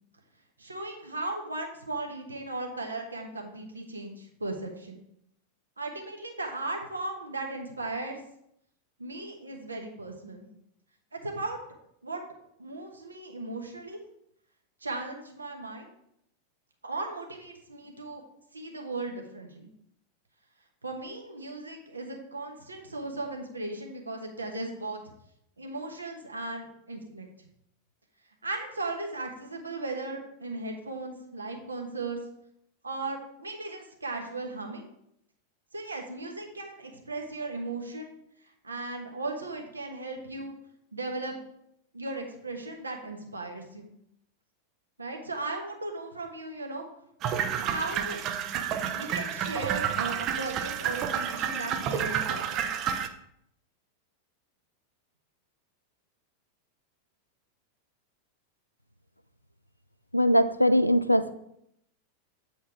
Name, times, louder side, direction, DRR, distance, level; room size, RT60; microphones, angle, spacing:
voice 1, 0.6-5.0 5.8-8.2 9.0-10.5 11.1-11.6 12.0-12.2 12.6-14.0 14.8-15.9 16.8-18.2 18.5-19.7 20.8-25.0 25.6-27.3 28.4-32.2 32.8-34.9 35.7-38.1 38.6-40.5 40.9-41.4 41.9-43.9 45.0-46.9 47.6-48.2 48.9-52.5, right 2 dB, 80° right, 2 dB, 1.2 m, -37 dB
sound 1, 47.2-53.1, right 8 dB, 35° right, 0.6 m, -30 dB
voice 2, 60.1-61.3, equal, 90° left, 12 dB, 0.4 m, -21 dB
8.1 x 4.3 x 4.8 m, 0.74 s
figure-of-eight pair, 90°, 0 cm